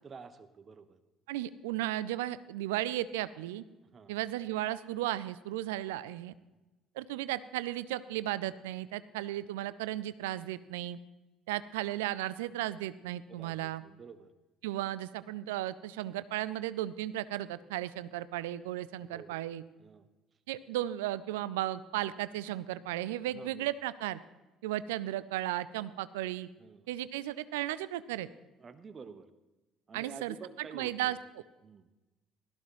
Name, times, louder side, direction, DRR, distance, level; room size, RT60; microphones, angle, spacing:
voice 1, 0.0-1.0 3.8-4.2 6.5-6.6 13.3-14.3 19.1-19.4 19.8-20.1 23.3-23.7 26.6-26.9 28.6-29.3 29.9-31.2 31.6-31.9, right 5 dB, 35° right, 12 dB, 1.0 m, -50 dB
voice 2, 1.3-3.6 4.1-6.3 7.0-11.0 11.5-13.8 14.6-19.6 20.5-24.2 24.6-26.5 26.9-28.3 29.9-30.3 30.7-31.2, right 14 dB, 75° right, 17 dB, 0.4 m, -35 dB
16.5 x 13.5 x 3.1 m, 1.1 s
figure-of-eight pair, 55°, 0 cm